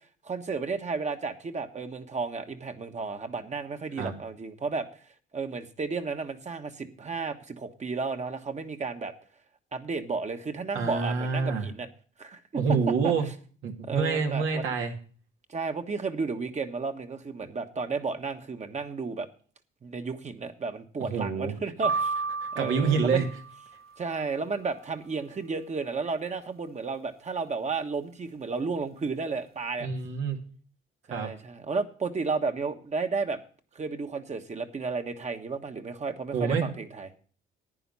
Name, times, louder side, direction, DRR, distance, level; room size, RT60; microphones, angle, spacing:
voice 1, 0.2-4.9 5.3-9.1 9.7-11.9 12.2-12.8 13.0-13.1 13.8-14.7 15.5-19.3 19.8-22.1 22.5-23.3 24.0-29.9 31.1-33.4 33.7-37.1, right 4 dB, 35° right, 6 dB, 1.3 m, -33 dB
voice 2, 10.7-11.7 12.5-13.3 13.6-14.9 21.0-21.5 22.6-23.3 29.8-30.4 31.1-31.3 36.3-36.7, right 5 dB, 85° right, 2 dB, 2.3 m, -27 dB
sound 1, 21.8-24.0, right 4 dB, 50° right, 0.9 m, -32 dB
11.0 x 9.5 x 5.5 m, 0.43 s
cardioid pair, 90°, 20 cm